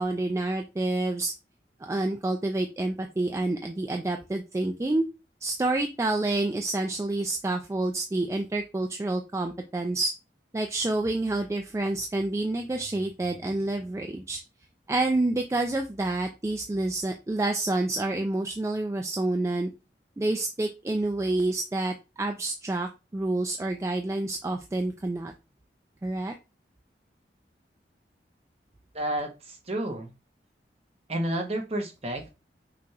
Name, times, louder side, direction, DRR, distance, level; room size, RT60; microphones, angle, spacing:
voice 1, 0.0-1.3 1.8-5.1 5.4-10.1 10.5-14.4 14.9-19.7 20.2-25.3 26.0-26.3, right 2 dB, 15° right, 4 dB, 0.3 m, -28 dB
voice 2, 28.9-30.1 31.1-32.3, right 1 dB, 35° right, 3 dB, 1.0 m, -30 dB
5.9 x 2.9 x 2.4 m, 0.28 s
head